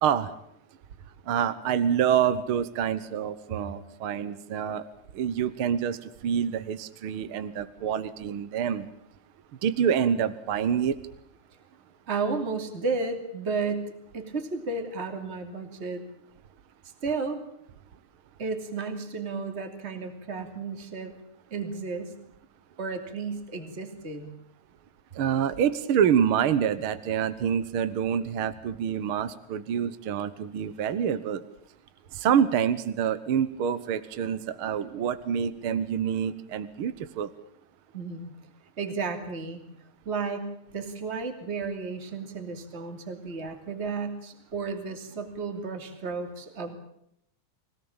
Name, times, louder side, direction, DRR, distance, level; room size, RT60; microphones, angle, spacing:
voice 1, 1.3-4.9 5.1-8.9 9.6-11.0 25.1-31.5 32.1-37.3, right 8 dB, 60° right, 13 dB, 1.6 m, -27 dB
voice 2, 12.1-16.0 17.0-17.4 18.4-21.1 21.5-22.2 22.8-24.3 37.9-38.3 38.8-39.6 40.0-46.7, right 4 dB, 20° right, 7 dB, 2.7 m, -33 dB
26.0 x 17.5 x 8.8 m, 0.76 s
omnidirectional pair, 3.4 m